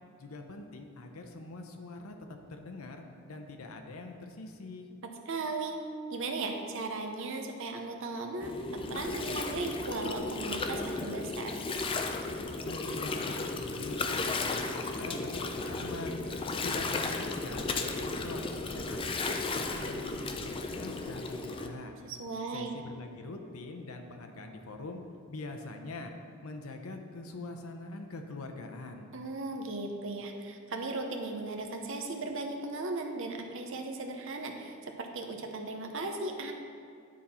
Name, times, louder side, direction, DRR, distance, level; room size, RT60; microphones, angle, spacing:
voice 1, 0.2-2.1 2.5-4.9 12.6-16.2 16.6-21.9 22.5-25.0 25.3-26.1 26.4-29.1, left 2 dB, 85° left, 4 dB, 0.7 m, -43 dB
voice 2, 5.0-5.8 6.1-11.5 22.0-22.7 29.1-36.5, right 3 dB, 65° right, 3 dB, 0.7 m, -37 dB
Gurgling, 8.4-21.7, left 3 dB, 25° left, 0.4 m, -34 dB
10.0 x 4.2 x 4.3 m, 2.3 s
head